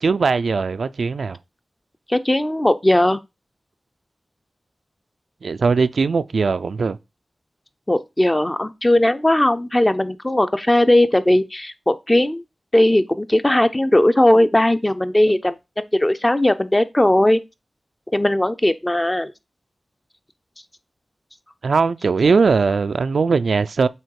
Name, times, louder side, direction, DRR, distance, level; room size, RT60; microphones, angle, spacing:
voice 1, 0.0-1.4 5.4-7.0 21.6-23.9, right 4 dB, 85° right, 0.3 m, -19 dB
voice 2, 2.1-3.2 7.9-12.4 12.7-17.4 18.1-19.3, left 1 dB, 20° left, 0.5 m, -18 dB
7.5 x 2.9 x 4.7 m
wide cardioid pair, 80°, 0 cm